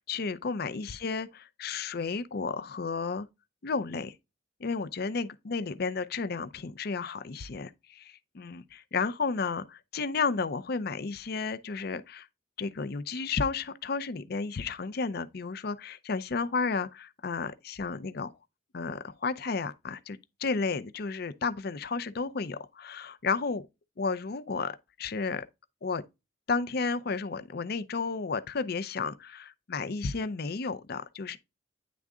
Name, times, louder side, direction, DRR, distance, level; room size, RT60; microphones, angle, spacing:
voice 1, 0.1-3.3 3.6-4.1 4.6-12.3 12.6-18.3 18.7-23.6 24.0-25.4 25.8-26.0 26.5-31.4, left 4 dB, 55° left, 0.5 m, -32 dB
9.4 x 3.6 x 3.5 m
head